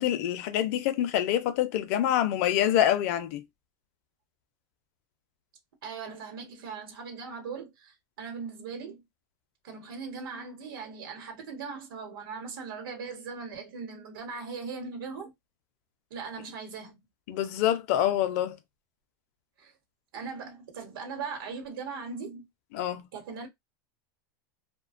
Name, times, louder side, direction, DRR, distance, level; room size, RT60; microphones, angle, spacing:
voice 1, 0.0-3.4 17.3-18.6 22.7-23.0, left 11 dB, 45° left, 0.4 m, -26 dB
voice 2, 5.8-9.0 9.6-15.3 16.1-17.0 19.6-19.7 20.1-22.5 23.1-23.5, right 5 dB, 85° right, 1.0 m, -39 dB
2.4 x 2.1 x 2.4 m
supercardioid pair, 170°, 11 cm